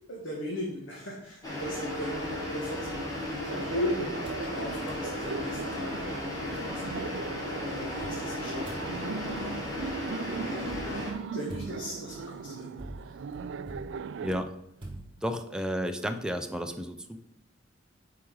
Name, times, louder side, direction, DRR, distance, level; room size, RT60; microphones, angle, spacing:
voice 1, 0.1-7.1 7.6-9.6 10.4-12.8, left 1 dB, 80° left, -3 dB, 1.7 m, -38 dB
sound 1, 1.4-11.1, left 1 dB, 20° left, 2.0 m, -35 dB
sound 2, 2.8-3.8 4.2-4.5 4.9-5.1 5.6-5.7 5.9-7.0 8.0-15.6, right 1 dB, 30° right, 1.9 m, -48 dB
Laughter, 3.5-14.4, right 6 dB, 65° right, 0.3 m, -39 dB
voice 2, 14.2-14.5 15.2-17.2, equal, 5° right, 6 dB, 0.6 m, -32 dB
6.7 x 4.8 x 6.3 m, 0.79 s
head